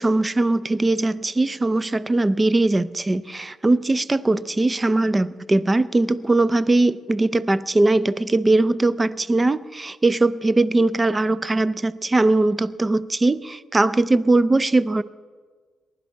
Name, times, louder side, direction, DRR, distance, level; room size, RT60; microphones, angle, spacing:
voice 1, 0.0-15.0, right 2 dB, 20° right, 17 dB, 0.4 m, -20 dB
19.5 x 11.0 x 4.5 m, 1.5 s
cardioid pair, 90°, 0 cm